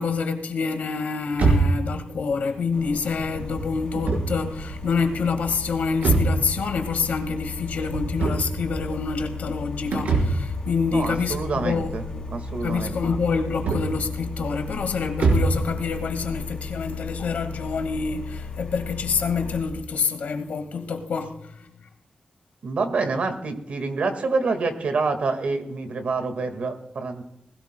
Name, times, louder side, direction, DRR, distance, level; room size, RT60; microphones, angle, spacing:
voice 1, 0.0-12.2 12.6-21.3, left 5 dB, 85° left, 1.7 m, -27 dB
sound 1, 1.3-15.7, right 3 dB, 85° right, 4.6 m, -27 dB
sound 2, 2.7-19.6, left 5 dB, 30° left, 2.6 m, -35 dB
voice 2, 10.9-12.0 12.3-13.0 22.6-27.2, right 4 dB, 60° right, 1.7 m, -27 dB
19.5 x 17.0 x 2.2 m
wide cardioid pair, 175°, 3 cm